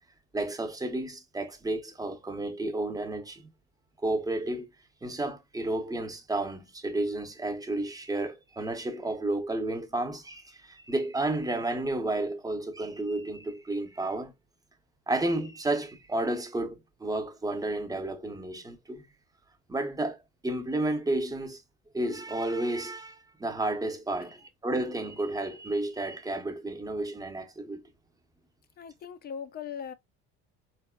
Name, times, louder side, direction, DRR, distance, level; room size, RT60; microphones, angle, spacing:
voice 1, 0.3-3.5 4.0-4.7 5.0-14.3 15.1-19.0 19.7-20.2 20.4-21.6 21.9-27.8, right 2 dB, 10° right, 0.7 m, -32 dB
voice 2, 28.8-29.9, left 7 dB, 30° left, 0.4 m, -39 dB
4.0 x 2.1 x 2.2 m
cardioid pair, 110°, 32 cm